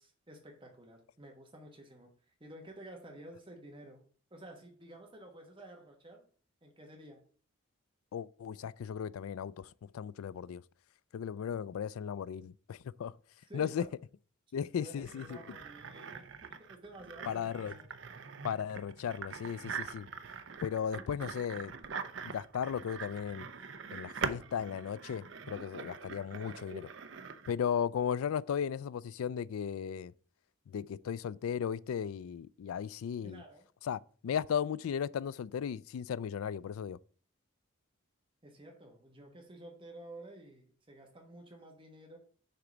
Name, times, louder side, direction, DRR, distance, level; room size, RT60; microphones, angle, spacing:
voice 1, 0.0-6.2 6.6-7.2 13.5-13.9 14.8-16.2 16.6-17.9 33.2-33.7 38.4-42.2, right 1 dB, 25° right, 1.3 m, -52 dB
voice 2, 8.1-10.6 11.1-13.1 13.5-13.8 14.5-15.4 17.3-17.7 18.4-20.1 20.6-21.7 22.2-23.5 23.9-26.9 27.5-30.1 30.7-33.4 33.8-37.0, left 8 dB, 90° left, 0.3 m, -36 dB
sound 1, 15.1-27.5, right 5 dB, 60° right, 0.6 m, -43 dB
6.7 x 3.9 x 6.1 m
head